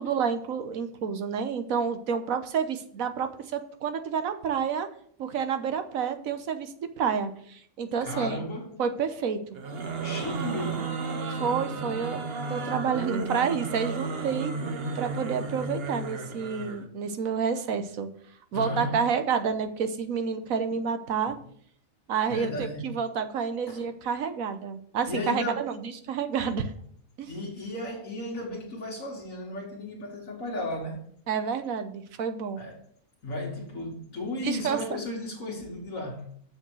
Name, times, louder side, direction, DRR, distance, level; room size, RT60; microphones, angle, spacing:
voice 1, 0.0-4.9 5.2-8.4 8.8-9.6 11.3-12.2 12.5-14.5 14.9-18.1 18.5-21.3 22.1-26.7 27.2-27.3 31.3-32.6 34.4-34.8, right 6 dB, 85° right, 1.3 m, -29 dB
voice 2, 8.0-8.7 10.0-10.9 18.5-19.0 21.3-21.4 22.3-22.9 23.7-23.9 25.1-25.8 27.3-31.0 32.6-32.8 33.2-36.3, left 1 dB, 75° left, 2.0 m, -34 dB
sound 1, 9.5-16.9, right 3 dB, 50° right, 1.1 m, -33 dB
7.1 x 6.0 x 6.2 m
omnidirectional pair, 1.4 m